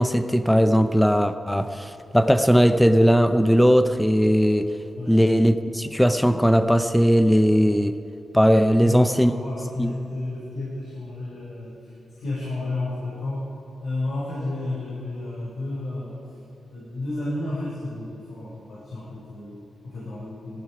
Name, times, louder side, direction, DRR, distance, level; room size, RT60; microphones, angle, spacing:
voice 1, 0.0-4.7 5.1-8.0 8.3-9.3 9.8-9.9, equal, 5° left, 10 dB, 0.6 m, -18 dB
voice 2, 8.8-13.5 13.8-16.2 16.7-20.6, left 2 dB, 80° left, -8 dB, 4.7 m, -32 dB
18.5 x 14.5 x 4.9 m, 2.8 s
wide cardioid pair, 125°, 0 cm